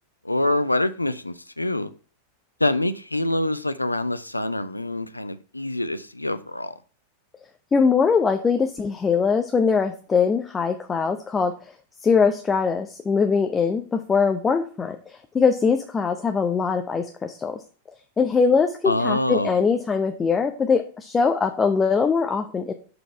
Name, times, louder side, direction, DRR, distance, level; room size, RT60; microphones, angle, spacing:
voice 1, 0.2-1.9 2.6-6.7 18.8-19.6, left 1 dB, 85° left, 0.4 m, -25 dB
voice 2, 7.7-11.7 12.0-17.6 18.2-22.7, left 5 dB, 20° left, 0.6 m, -22 dB
6.7 x 4.0 x 4.4 m
figure-of-eight pair, 90°, 0 cm